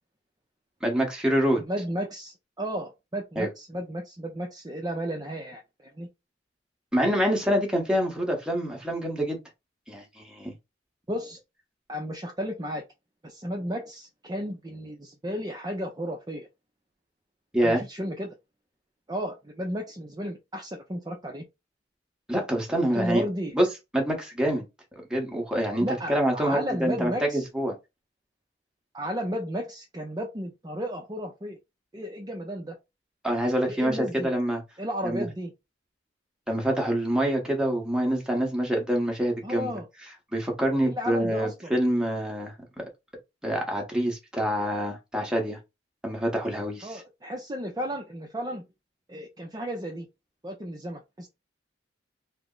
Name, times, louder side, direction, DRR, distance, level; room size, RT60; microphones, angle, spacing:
voice 1, 0.8-1.6 3.4-3.5 6.9-9.4 9.9-10.5 17.5-17.8 22.3-23.2 23.5-23.7 23.9-24.6 25.1-27.7 33.2-34.6 35.0-35.3 36.5-39.7 40.3-42.9 43.4-45.6 46.0-47.0, equal, 5° right, 1.0 m, -26 dB
voice 2, 1.7-6.1 11.1-11.4 11.9-12.8 13.2-16.5 17.6-18.3 19.1-21.4 23.0-23.5 25.8-27.5 28.9-31.6 31.9-32.8 33.7-34.3 34.8-35.5 39.4-39.9 40.8-41.7 46.8-48.7 49.1-50.1 50.4-51.3, equal, 20° right, 0.5 m, -33 dB
3.3 x 2.0 x 3.7 m
head